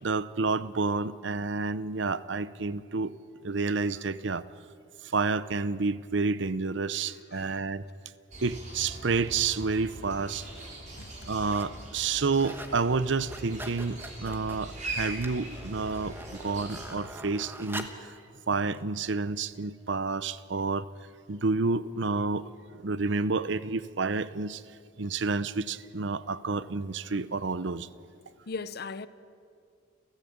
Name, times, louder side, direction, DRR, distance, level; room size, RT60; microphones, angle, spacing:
voice 1, 0.0-3.1 3.4-4.4 5.1-7.8 8.4-10.5 11.3-17.9 18.5-20.9 21.3-22.5 22.8-24.6 25.0-27.9, right 4 dB, 60° right, 0.7 m, -29 dB
sound 1, 8.3-16.9, right 1 dB, 35° right, 4.7 m, -41 dB
sound 2, 9.5-9.6 10.3-10.7 11.1-11.8 12.1-12.8 13.1-18.1 18.7-18.8, right 1 dB, 10° right, 1.2 m, -44 dB
voice 2, 10.5-11.3 28.5-29.1, left 4 dB, 50° left, 0.7 m, -40 dB
30.0 x 14.0 x 8.7 m
head